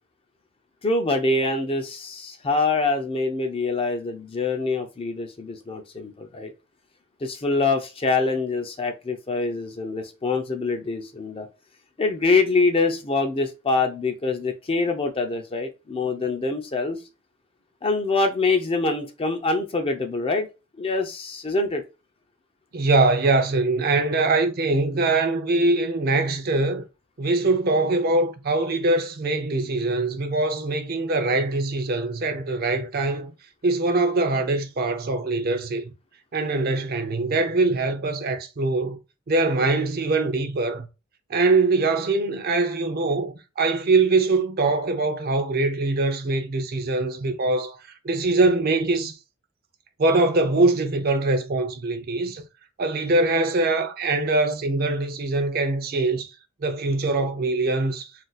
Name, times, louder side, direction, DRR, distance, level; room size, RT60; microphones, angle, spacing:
voice 1, 0.8-6.5 7.2-11.5 12.0-17.0 17.8-20.5 20.7-21.8, left 3 dB, 25° left, 0.4 m, -25 dB
voice 2, 22.7-26.8 27.2-33.3 33.6-35.9 36.3-39.0 39.3-40.9 41.3-47.8 48.0-49.2 50.0-52.4 52.8-56.3 56.6-58.1, right 2 dB, 45° right, 0.5 m, -23 dB
2.5 x 2.3 x 3.9 m
head